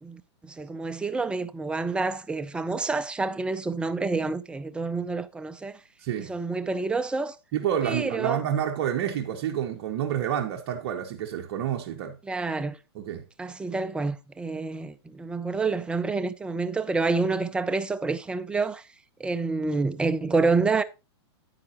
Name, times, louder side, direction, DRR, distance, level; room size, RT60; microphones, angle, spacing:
voice 1, 0.0-5.8 6.2-7.4 7.8-8.4 12.2-12.8 13.4-18.8 19.2-20.8, right 3 dB, 5° right, 0.5 m, -28 dB
voice 2, 6.0-6.3 7.5-12.2 12.9-13.3, right 9 dB, 50° right, 1.3 m, -29 dB
9.7 x 9.6 x 3.0 m
hypercardioid pair, 135°, 14 cm